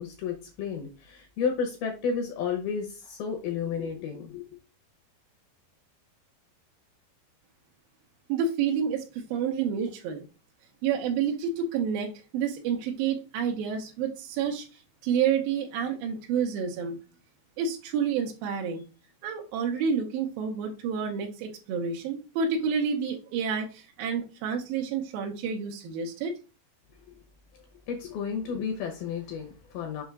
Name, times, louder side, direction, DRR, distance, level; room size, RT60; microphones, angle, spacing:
voice 1, 0.0-4.6 27.1-27.2 27.9-30.0, left 6 dB, 75° left, 3 dB, 2.4 m, -32 dB
voice 2, 8.3-10.2 10.8-17.0 17.6-18.8 19.2-26.3, right 6 dB, 75° right, 1 dB, 2.2 m, -29 dB
6.9 x 2.7 x 5.8 m, 0.32 s
omnidirectional pair, 5.2 m